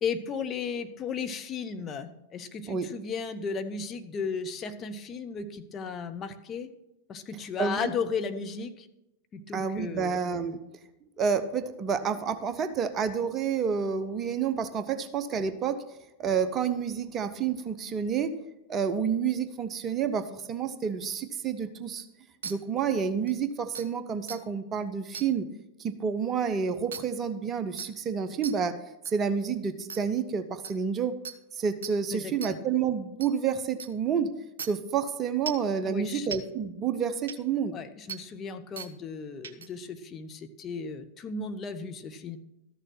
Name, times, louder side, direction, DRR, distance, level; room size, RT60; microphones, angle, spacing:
voice 1, 0.0-6.7 7.1-8.9 9.3-10.2 32.1-32.6 35.8-36.3 37.7-42.4, left 5 dB, 25° left, 8 dB, 0.8 m, -35 dB
voice 2, 7.6-7.9 9.5-10.6 11.2-15.8 16.2-18.3 18.7-22.1 22.4-25.5 25.8-28.8 29.1-31.2 31.5-34.3 34.6-37.8, right 6 dB, 25° right, 10 dB, 0.9 m, -29 dB
sound 1, 22.4-22.5 23.3-23.4 23.7-23.9 24.3-24.4 25.1-25.3 26.9-27.0 27.8-27.9 28.4-28.5 29.0-29.1 29.9-30.0 30.6-30.7 31.2-31.4 31.8-31.9 32.4-32.5 33.2-33.3 33.8-33.9 34.6-34.7 35.5-35.7 36.3-36.4 37.3-37.4 38.1-38.2 38.8-38.9 39.4-39.7, right 6 dB, 60° right, 0.9 m, -37 dB
13.5 x 6.6 x 6.1 m, 0.90 s
figure-of-eight pair, 90°, 0 cm